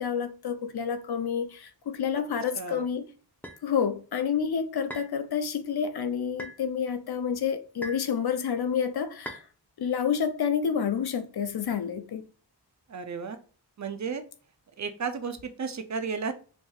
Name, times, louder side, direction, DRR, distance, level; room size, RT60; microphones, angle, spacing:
voice 1, 0.0-3.0 3.6-9.4 9.8-12.2, left 7 dB, 70° left, 0.5 m, -29 dB
sound 1, 3.4-3.6 4.9-5.2 6.4-6.6 7.8-8.1 9.2-9.5, equal, 5° left, 0.6 m, -40 dB
voice 2, 12.9-13.4 13.8-14.2 14.8-16.3, right 5 dB, 45° right, 0.5 m, -33 dB
4.6 x 2.7 x 2.3 m
wide cardioid pair, 75°, 40 cm